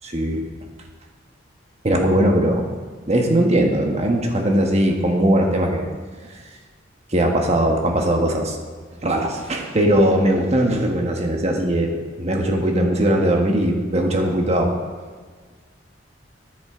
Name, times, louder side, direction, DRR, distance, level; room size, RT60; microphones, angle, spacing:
voice 1, 0.0-0.4 1.8-2.7 3.0-5.9 7.1-8.6 9.0-14.7, right 1 dB, 35° right, 2 dB, 1.5 m, -19 dB
13.0 x 10.0 x 3.8 m, 1.5 s
head